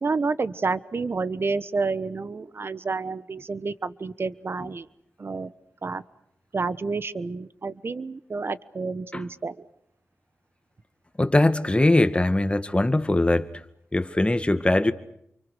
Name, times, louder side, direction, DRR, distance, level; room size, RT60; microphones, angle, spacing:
voice 1, 0.0-4.9 5.2-5.5 5.8-6.0 6.5-9.6, right 4 dB, 55° right, 15 dB, 1.2 m, -29 dB
voice 2, 11.2-13.5 13.9-14.9, left 2 dB, 25° left, 10 dB, 1.9 m, -21 dB
29.5 x 24.5 x 6.6 m, 0.75 s
cardioid pair, 45°, 5 cm